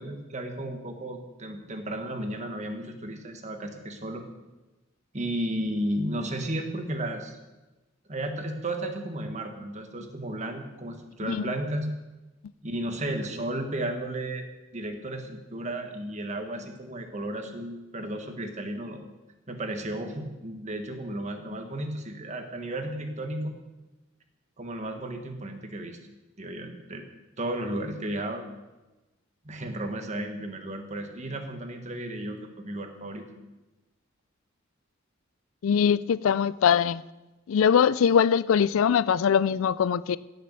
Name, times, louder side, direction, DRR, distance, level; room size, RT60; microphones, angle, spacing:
voice 1, 0.0-4.2 5.1-7.4 8.1-11.9 12.6-14.5 14.7-19.0 19.5-23.5 24.6-26.0 26.4-27.0 27.4-28.4 29.4-33.3, right 1 dB, 35° right, 1.5 m, -33 dB
voice 2, 11.2-11.5 35.6-37.0 37.5-40.2, left 7 dB, 85° left, 0.4 m, -22 dB
16.5 x 6.7 x 6.7 m
head